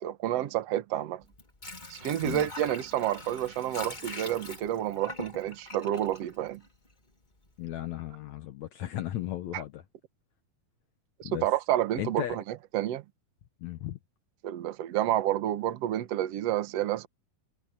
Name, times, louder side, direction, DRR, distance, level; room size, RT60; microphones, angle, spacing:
voice 1, 0.0-1.2 1.9-6.6 9.5-9.6 11.2-12.4 12.7-13.0 14.4-17.1, right 12 dB, 75° right, 1.5 m, -29 dB
Water / Sink (filling or washing), 1.2-7.1 7.5-7.6, left 2 dB, 20° left, 1.3 m, -43 dB
voice 2, 7.6-9.8 11.2-11.4 12.0-12.4 13.6-14.0, left 13 dB, 75° left, 1.6 m, -35 dB
omnidirectional pair, 4.6 m